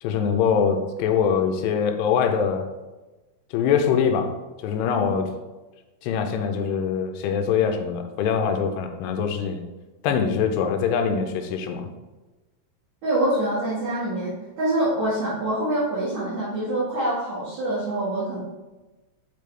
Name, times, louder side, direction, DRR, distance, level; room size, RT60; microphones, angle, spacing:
voice 1, 0.0-2.7 3.5-4.4 4.6-5.3 6.0-9.6 10.0-11.9, left 7 dB, 90° left, 5 dB, 2.7 m, -23 dB
voice 2, 13.0-18.4, right 1 dB, 55° right, -10 dB, 2.7 m, -25 dB
7.5 x 5.2 x 3.3 m, 1.2 s
omnidirectional pair, 4.7 m